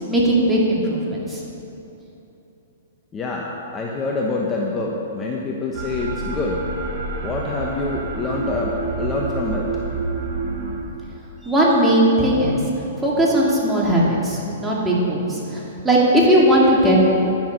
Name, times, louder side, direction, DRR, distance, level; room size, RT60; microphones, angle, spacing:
voice 1, 0.1-1.4 11.4-12.6 13.0-17.0, right 1 dB, 10° right, -5 dB, 2.5 m, -18 dB
voice 2, 3.1-6.6 7.2-9.7, left 3 dB, 20° left, -2 dB, 1.1 m, -26 dB
sound 1, 5.7-10.8, right 4 dB, 45° right, 3.2 m, -28 dB
11.0 x 10.5 x 5.3 m, 3.0 s
hypercardioid pair, 140°, 0 cm